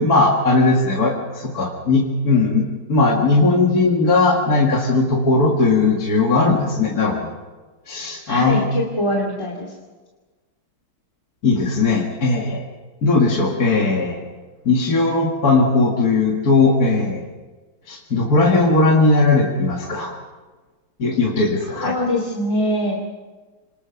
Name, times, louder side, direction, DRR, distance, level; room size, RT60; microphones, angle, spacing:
voice 1, 0.0-7.3 7.9-8.6 11.4-12.6 13.0-14.2 14.7-17.2 17.9-20.1 21.0-21.9, left 3 dB, 45° left, -2 dB, 2.4 m, -18 dB
voice 2, 8.2-9.7 21.8-23.0, left 1 dB, 15° left, -2 dB, 2.5 m, -22 dB
26.5 x 20.5 x 5.9 m, 1.3 s
omnidirectional pair, 2.3 m